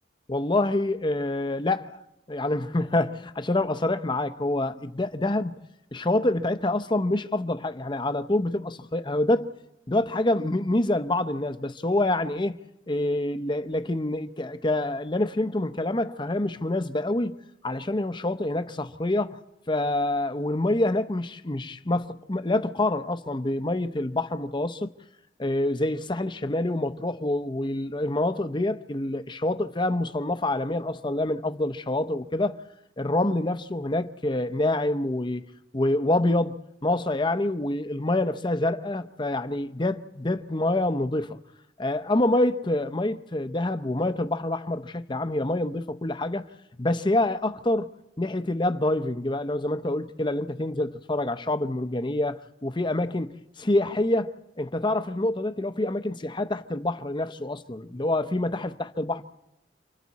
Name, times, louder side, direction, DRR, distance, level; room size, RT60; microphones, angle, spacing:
voice 1, 0.3-1.9 2.3-5.5 5.9-9.5 9.9-12.6 12.9-19.4 19.7-24.9 25.4-32.5 33.0-35.4 35.7-41.4 41.8-46.4 46.8-47.9 48.2-59.2, left 1 dB, 25° left, 0.8 m, -26 dB
29.0 x 25.5 x 4.2 m
head